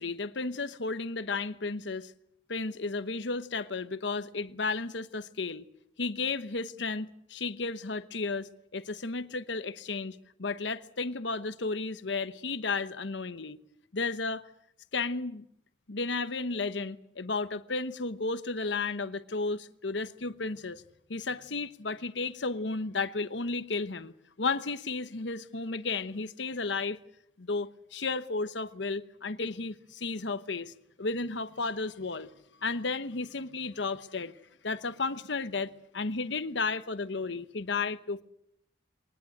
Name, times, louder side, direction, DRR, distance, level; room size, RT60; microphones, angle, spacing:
voice 1, 0.0-2.1 2.5-5.7 6.0-13.6 13.9-14.4 14.9-15.4 15.9-20.8 21.1-27.0 27.4-32.3 32.6-34.3 34.6-38.2, left 3 dB, 70° left, 1.0 m, -33 dB
22.5 x 19.5 x 7.9 m
head